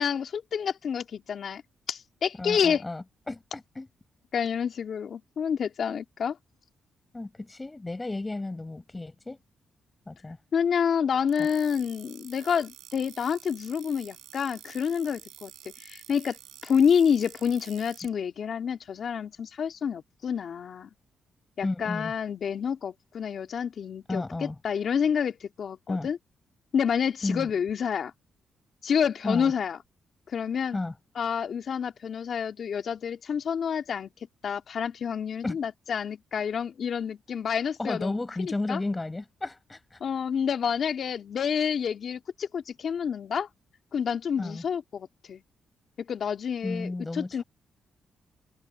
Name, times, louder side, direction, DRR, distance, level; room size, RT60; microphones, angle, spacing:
voice 1, 0.0-1.6 1.9-2.8 4.3-6.4 10.5-16.4 16.6-20.9 21.6-26.2 26.7-28.1 28.8-29.8 30.3-30.8 31.1-38.2 38.4-38.8 40.0-43.5 43.9-45.4 46.0-47.4, left 7 dB, 60° left, 2.9 m, -28 dB
voice 2, 2.4-3.9 7.1-9.4 10.1-10.4 11.4-11.5 21.6-22.1 24.1-24.5 25.9-26.1 27.2-27.5 29.2-29.5 30.7-30.9 35.4-35.6 37.8-40.0 44.4-44.6 46.6-47.4, left 2 dB, 20° left, 6.0 m, -33 dB
sound 1, 11.3-18.1, right 12 dB, 85° right, 7.0 m, -49 dB
cardioid pair, 80°, 0 cm